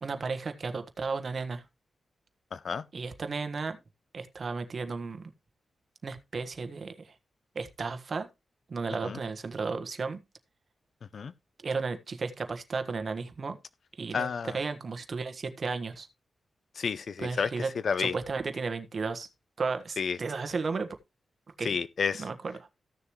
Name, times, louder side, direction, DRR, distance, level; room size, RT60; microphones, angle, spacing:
voice 1, 0.0-1.6 2.9-3.8 4.1-5.2 6.0-6.9 7.5-8.3 8.7-10.2 11.6-13.6 14.0-16.1 17.2-17.7 18.0-19.3 19.6-21.0 21.6-21.7 22.2-22.3, right 4 dB, 50° right, 1.4 m, -34 dB
voice 2, 2.5-2.9 9.0-9.2 11.1-11.3 14.1-14.6 16.7-18.2 20.0-20.2 21.6-22.3, left 6 dB, 60° left, 0.5 m, -31 dB
14.5 x 6.8 x 3.1 m
wide cardioid pair, 120°, 0 cm